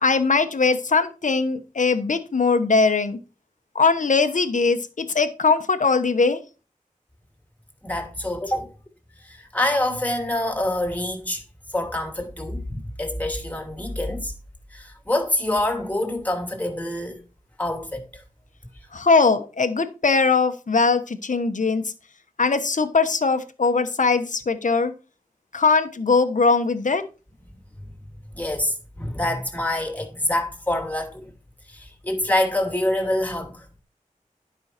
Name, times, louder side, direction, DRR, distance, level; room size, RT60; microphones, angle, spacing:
voice 1, 0.0-3.2 3.7-6.4 18.9-21.8 22.4-24.9 25.5-27.0, left 4 dB, 65° left, 1.1 m, -20 dB
voice 2, 7.8-8.7 9.2-14.3 14.7-17.2 17.6-18.2 28.3-31.3 31.7-33.7, left 1 dB, 10° left, 2.7 m, -26 dB
11.5 x 5.6 x 4.4 m
wide cardioid pair, 75°, 14 cm